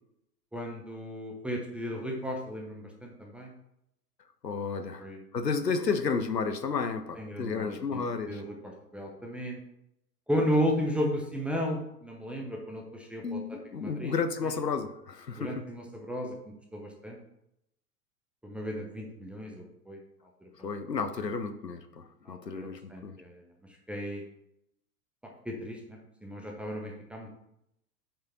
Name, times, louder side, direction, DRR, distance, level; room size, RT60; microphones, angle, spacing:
voice 1, 0.5-3.5 5.0-5.2 7.1-9.6 10.3-14.1 14.4-14.5 15.4-17.2 18.4-20.0 20.4-20.7 22.3-23.4 23.9-24.2 25.2-27.3, equal, 5° right, 0 dB, 0.6 m, -34 dB
voice 2, 4.4-5.0 5.3-8.4 13.2-15.6 20.6-23.1, left 5 dB, 85° left, 9 dB, 0.8 m, -32 dB
7.4 x 4.8 x 4.3 m, 0.80 s
figure-of-eight pair, 100°, 48 cm